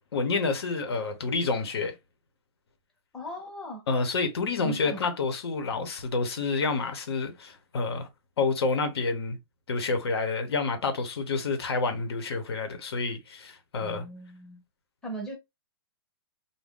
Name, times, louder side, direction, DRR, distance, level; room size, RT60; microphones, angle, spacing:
voice 1, 0.1-1.9 3.9-8.1 8.4-9.4 9.7-14.0, left 4 dB, 90° left, 1.0 m, -28 dB
voice 2, 3.1-3.9 4.6-5.0 13.8-14.6 15.0-15.3, right 1 dB, 5° left, 0.6 m, -38 dB
2.6 x 2.2 x 3.6 m
hypercardioid pair, 170°, 13 cm